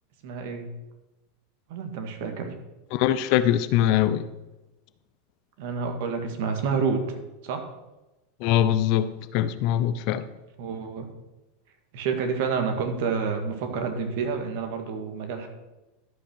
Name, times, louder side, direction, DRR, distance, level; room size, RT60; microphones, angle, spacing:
voice 1, 0.2-0.7 1.7-2.5 5.6-7.2 7.4-7.6 10.6-11.1 11.9-15.5, right 5 dB, 60° right, 5 dB, 2.1 m, -29 dB
voice 2, 2.9-4.3 8.4-10.2, left 11 dB, 55° left, 13 dB, 0.7 m, -22 dB
12.5 x 5.8 x 6.3 m, 1.0 s
hypercardioid pair, 90°, 0 cm